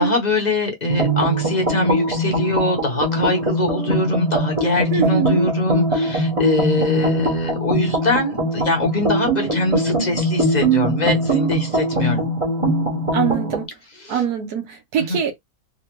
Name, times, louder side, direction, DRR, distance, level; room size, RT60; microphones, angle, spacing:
voice 1, 0.0-12.3 13.9-14.2 15.0-15.2, left 2 dB, 30° left, 0.9 m, -22 dB
sound 1, 0.9-13.6, right 1 dB, 25° right, 0.9 m, -21 dB
voice 2, 4.9-5.4 13.1-13.7 14.1-15.3, right 8 dB, 75° right, 1.3 m, -23 dB
4.0 x 2.3 x 2.9 m
omnidirectional pair, 1.7 m